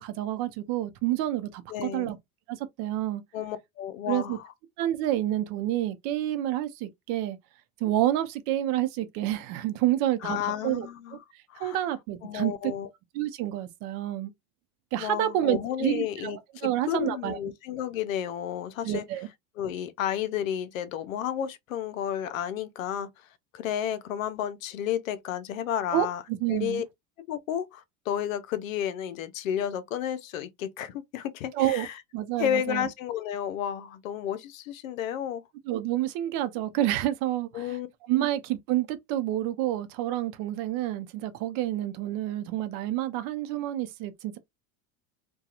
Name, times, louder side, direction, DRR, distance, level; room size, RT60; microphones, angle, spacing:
voice 1, 0.0-2.2 2.5-3.2 4.1-4.4 4.8-7.4 7.8-10.9 11.6-12.5 13.1-14.3 14.9-17.4 18.8-19.3 25.9-26.8 31.5-31.9 32.1-32.9 35.7-37.8 38.1-44.4, right 13 dB, 60° right, 0.7 m, -29 dB
voice 2, 1.7-2.1 3.3-4.4 10.2-11.2 11.5-11.8 12.2-12.9 15.0-16.4 16.6-19.1 19.6-23.3 23.5-26.2 26.5-26.8 27.2-32.0 32.4-35.4 37.5-37.9, left 10 dB, 90° left, 0.6 m, -32 dB
2.8 x 2.3 x 2.3 m
hypercardioid pair, 90°, 39 cm